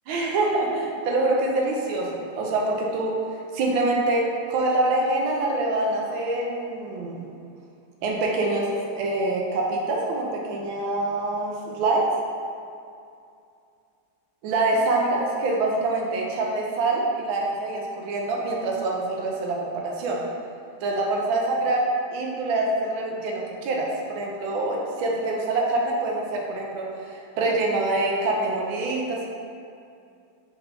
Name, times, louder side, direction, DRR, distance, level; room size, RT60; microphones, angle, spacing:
voice 1, 0.1-3.2 3.5-4.2 4.5-7.3 8.0-12.1 14.4-20.2 20.8-29.3, right 2 dB, 85° right, -1 dB, 1.4 m, -25 dB
4.4 x 2.7 x 4.0 m, 2.4 s
omnidirectional pair, 2.2 m